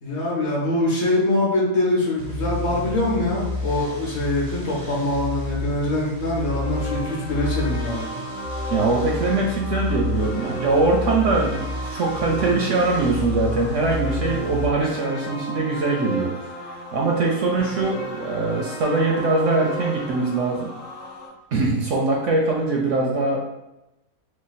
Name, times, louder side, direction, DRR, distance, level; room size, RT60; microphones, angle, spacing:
voice 1, 0.0-8.0, left 1 dB, 55° left, -4 dB, 1.0 m, -23 dB
sound 1, 2.2-14.7, left 2 dB, 35° right, 0.5 m, -30 dB
sound 2, 6.5-21.3, equal, 80° left, 1.2 m, -34 dB
voice 2, 8.7-16.3 16.6-20.7 21.5-23.4, right 3 dB, 65° right, -1 dB, 0.8 m, -22 dB
3.1 x 2.2 x 4.0 m, 0.93 s
omnidirectional pair, 1.6 m